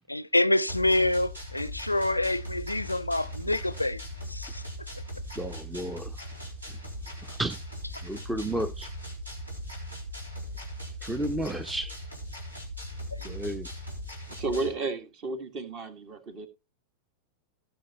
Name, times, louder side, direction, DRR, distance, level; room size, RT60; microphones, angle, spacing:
voice 1, 0.1-4.0 4.3-4.6 13.2-13.4, left 1 dB, 85° left, 0.5 m, -27 dB
sound 1, 0.7-14.7, equal, 80° right, 3.7 m, -39 dB
voice 2, 5.4-6.2 6.7-6.8 7.3-7.6 8.0-8.9 11.0-11.9 13.2-13.7, right 1 dB, 10° right, 0.7 m, -32 dB
voice 3, 14.3-16.5, right 3 dB, 40° right, 2.0 m, -33 dB
17.5 x 6.3 x 3.0 m
figure-of-eight pair, 90°, 0 cm